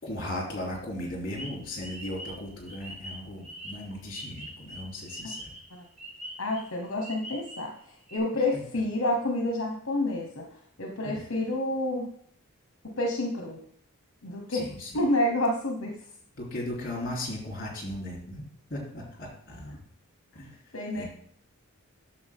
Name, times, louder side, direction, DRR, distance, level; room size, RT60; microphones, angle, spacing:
voice 1, 0.0-5.5 11.0-11.2 14.5-14.9 16.4-18.4 18.7-19.8 20.3-20.6 20.9-21.0, left 1 dB, 40° left, -2 dB, 3.2 m, -37 dB
sound 1, 1.3-7.8 8.1-8.2, right 1 dB, 30° right, 1.6 m, -43 dB
voice 2, 6.4-12.1 12.8-13.6 14.2-14.6 14.9-16.0 19.7-19.8 20.3-20.5 20.7-21.0, left 1 dB, 65° left, 1 dB, 1.1 m, -29 dB
9.4 x 6.9 x 3.6 m, 0.63 s
head